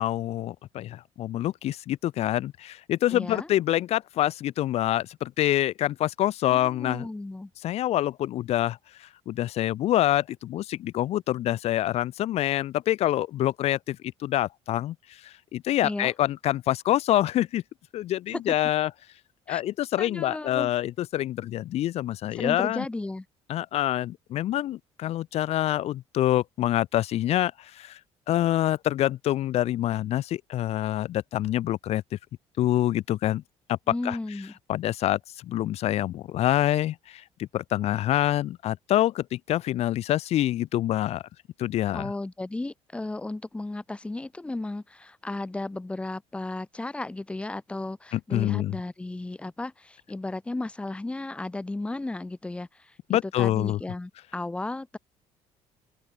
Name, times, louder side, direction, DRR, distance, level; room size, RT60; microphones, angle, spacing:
voice 1, 0.0-7.1 7.6-17.6 17.9-18.9 19.5-22.8 23.5-28.0 28.3-32.0 32.6-33.4 33.7-34.2 34.7-41.2 41.6-42.1 48.1-48.7 53.1-53.8, left 13 dB, 60° left, 1.6 m, -26 dB
voice 2, 3.1-3.5 6.5-7.5 15.8-16.1 18.3-18.5 19.5-19.6 20.0-20.7 22.4-23.3 33.9-34.5 41.9-55.0, left 2 dB, 10° left, 2.0 m, -34 dB
open air
cardioid pair, 145°, 12 cm